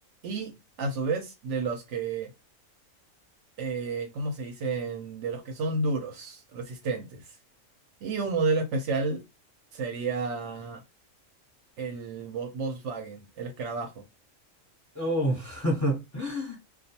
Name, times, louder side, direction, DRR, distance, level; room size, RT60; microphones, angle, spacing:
voice 1, 0.8-2.3 3.6-7.4 8.0-9.2 9.7-10.8 11.8-14.1, right 3 dB, 70° right, 0.8 m, -31 dB
voice 2, 14.9-16.6, equal, 15° left, 0.7 m, -28 dB
2.3 x 2.2 x 2.7 m
omnidirectional pair, 1.4 m